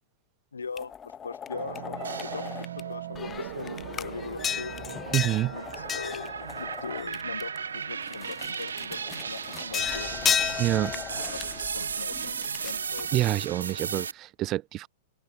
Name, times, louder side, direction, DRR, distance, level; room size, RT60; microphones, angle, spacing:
voice 1, 0.5-4.8 5.5-10.1 11.1-11.4 11.7-13.1, left 5 dB, 80° left, 1.1 m, -40 dB
sound 1, 0.8-2.8 3.1-7.6 8.0-13.9, left 8 dB, 20° left, 0.7 m, -34 dB
sound 2, 1.5-9.5, right 13 dB, 60° right, 1.2 m, -43 dB
sound 3, 2.0-2.9 3.4-14.1, right 6 dB, 75° right, 0.8 m, -36 dB
voice 2, 5.1-5.6 10.6-11.0 13.1-14.9, right 15 dB, 35° right, 0.5 m, -27 dB
open air
figure-of-eight pair, 105°, 0 cm